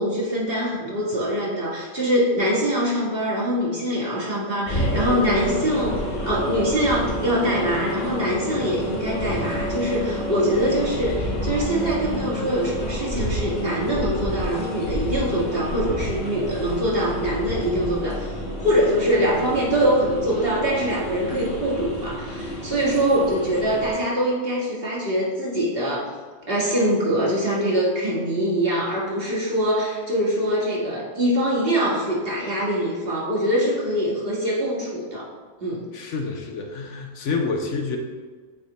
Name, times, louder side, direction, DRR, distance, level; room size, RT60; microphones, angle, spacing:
voice 1, 0.0-18.3 18.6-26.2 26.5-35.3 35.6-35.9, equal, 45° right, -5 dB, 1.6 m, -23 dB
sound 1, 4.7-23.9, equal, 40° left, 1.2 m, -29 dB
voice 2, 35.9-38.0, left 4 dB, 65° left, 3 dB, 0.9 m, -28 dB
8.3 x 3.3 x 4.0 m, 1.5 s
omnidirectional pair, 1.4 m